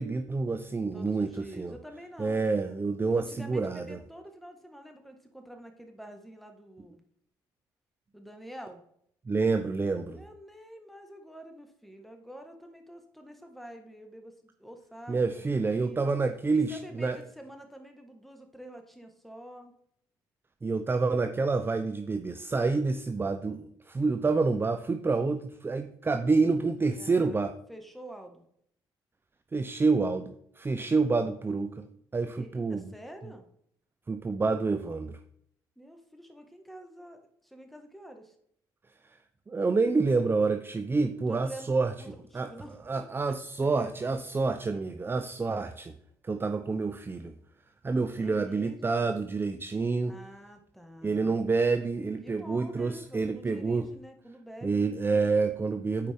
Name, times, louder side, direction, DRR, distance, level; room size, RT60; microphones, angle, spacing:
voice 1, 0.0-1.7 2.2-4.0 9.3-10.2 15.1-17.2 20.6-27.5 29.5-31.9 32.1-32.9 34.1-35.2 39.5-41.9 42.3-42.5 42.9-46.0 46.2-47.4 47.8-50.1 51.0-53.9 54.6-56.1, right 4 dB, 25° right, 8 dB, 0.6 m, -28 dB
voice 2, 0.9-2.4 3.1-7.0 8.1-8.8 10.2-16.1 16.5-19.7 27.0-28.5 32.3-33.5 35.8-38.4 41.3-43.4 48.2-49.2 50.1-51.4 52.2-55.3, equal, ahead, 5 dB, 1.6 m, -48 dB
8.9 x 5.0 x 3.6 m, 0.69 s
supercardioid pair, 65°, 10 cm